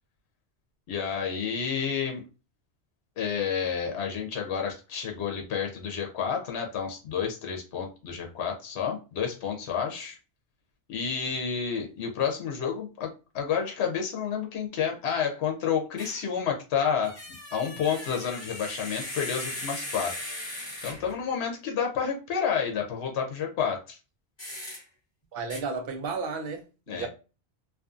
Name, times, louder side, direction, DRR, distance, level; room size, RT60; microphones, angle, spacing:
voice 1, 0.9-2.2 3.2-10.2 10.9-20.1 20.8-24.0 26.9-27.1, left 7 dB, 75° left, 0.9 m, -30 dB
sound 1, 16.0-16.3 17.0-21.2 24.4-24.8 25.5-25.6, left 1 dB, 25° left, 1.0 m, -38 dB
voice 2, 25.3-26.6 26.9-27.1, right 4 dB, 65° right, 0.7 m, -32 dB
2.5 x 2.5 x 2.4 m
omnidirectional pair, 1.1 m